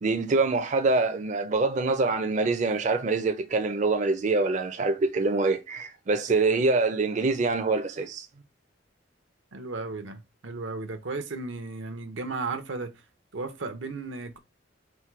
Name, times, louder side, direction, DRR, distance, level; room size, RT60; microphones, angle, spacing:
voice 1, 0.0-8.3, right 3 dB, 40° right, 0.4 m, -25 dB
voice 2, 9.5-12.9 13.3-14.4, right 3 dB, 85° right, 0.7 m, -34 dB
4.4 x 2.2 x 4.6 m
head